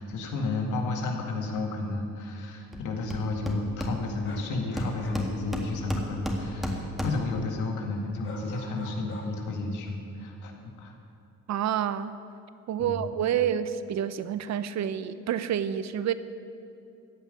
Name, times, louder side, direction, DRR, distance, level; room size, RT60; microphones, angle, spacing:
voice 1, 0.0-10.9 12.8-13.1, left 3 dB, 85° left, 2 dB, 2.0 m, -32 dB
Hammer, 2.7-2.8 3.1-4.4 4.8-7.4, equal, ahead, 1.8 m, -32 dB
sound 1, 4.2-5.3 8.2-9.5 9.8-9.9, left 2 dB, 40° left, 2.1 m, -44 dB
voice 2, 11.5-12.2 12.7-16.1, right 9 dB, 65° right, 13 dB, 0.7 m, -28 dB
15.0 x 5.4 x 9.7 m, 2.6 s
cardioid pair, 90°, 30 cm